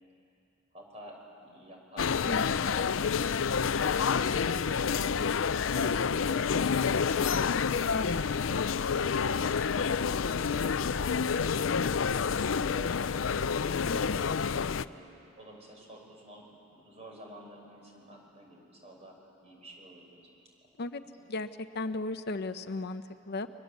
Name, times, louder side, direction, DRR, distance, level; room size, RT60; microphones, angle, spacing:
voice 1, 0.7-5.1 5.6-8.7 9.4-11.4 11.9-13.9 14.6-19.2 19.4-20.3 21.0-21.3, right 1 dB, 35° right, 0 dB, 6.0 m, -51 dB
sound 1, 2.0-14.9, left 6 dB, 85° left, 0.5 m, -28 dB
voice 2, 2.3-2.8 7.9-8.2 13.9-14.2 20.8-21.0 21.3-23.5, left 2 dB, 55° left, 9 dB, 0.8 m, -36 dB
29.0 x 23.5 x 8.3 m, 2.8 s
head